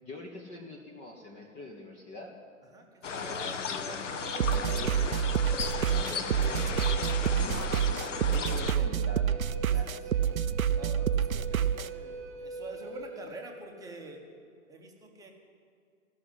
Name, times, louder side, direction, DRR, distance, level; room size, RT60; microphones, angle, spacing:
voice 1, 0.0-2.3 3.1-4.2 4.5-5.2 5.9-6.9 7.4-7.7 8.3-10.0, left 2 dB, 15° left, 0 dB, 0.7 m, -44 dB
voice 2, 2.7-3.3 6.0-6.3 9.7-10.2 10.7-14.2 14.7-15.3, right 2 dB, 10° right, 1 dB, 1.0 m, -47 dB
sound 1, 3.0-8.7, left 6 dB, 60° left, 0.9 m, -35 dB
Wind instrument woodwind instrument, 4.1-13.4, right 3 dB, 40° right, 0.8 m, -42 dB
sound 2, 4.4-11.9, right 8 dB, 85° right, 0.5 m, -28 dB
14.5 x 6.3 x 9.7 m, 2.2 s
figure-of-eight pair, 115°, 41 cm